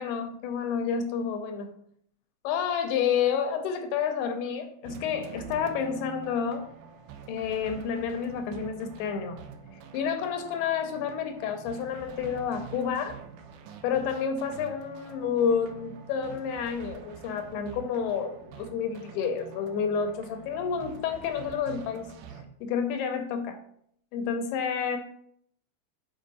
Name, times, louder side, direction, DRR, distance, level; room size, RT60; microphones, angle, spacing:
voice 1, 0.0-1.7 2.4-6.7 7.3-9.4 9.9-13.2 13.8-22.1 22.6-23.6 24.1-25.0, left 7 dB, 80° left, 6 dB, 2.4 m, -29 dB
sound 1, 4.8-22.5, right 6 dB, 85° right, 2.1 m, -46 dB
6.3 x 4.7 x 4.0 m, 0.68 s
omnidirectional pair, 5.0 m